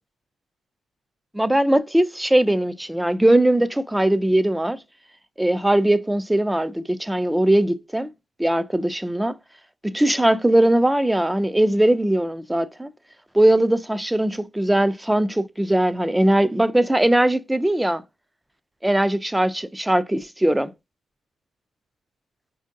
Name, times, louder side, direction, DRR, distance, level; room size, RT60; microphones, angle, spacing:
voice 1, 1.3-4.8 5.4-8.1 8.4-9.4 9.8-12.9 13.3-18.0 18.8-20.7, right 1 dB, 5° right, 0.3 m, -20 dB
4.3 x 2.6 x 2.5 m
cardioid pair, 90°, 0 cm